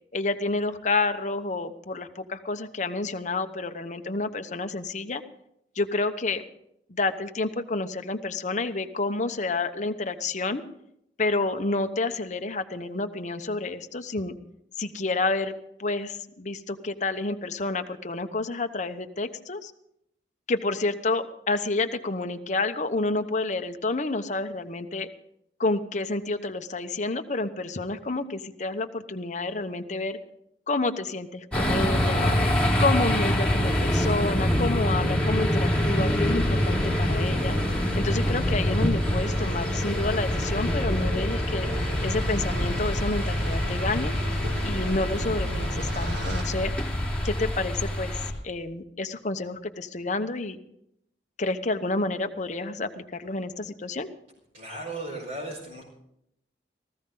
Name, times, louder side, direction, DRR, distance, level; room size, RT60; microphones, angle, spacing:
voice 1, 0.1-5.2 5.8-6.4 6.9-10.6 11.2-14.3 14.8-19.7 20.5-25.1 25.6-30.2 30.7-32.4 32.8-37.5 37.9-41.7 42.0-44.1 44.6-46.7 47.2-50.6 51.4-54.1, left 3 dB, 45° left, 8 dB, 1.0 m, -29 dB
sound 1, 31.5-48.3, left 1 dB, 5° left, 3.0 m, -25 dB
sound 2, 35.8-46.4, right 1 dB, 80° right, 2.4 m, -38 dB
voice 2, 54.5-55.8, right 2 dB, 50° right, -5 dB, 4.8 m, -36 dB
18.5 x 15.0 x 3.9 m, 0.75 s
head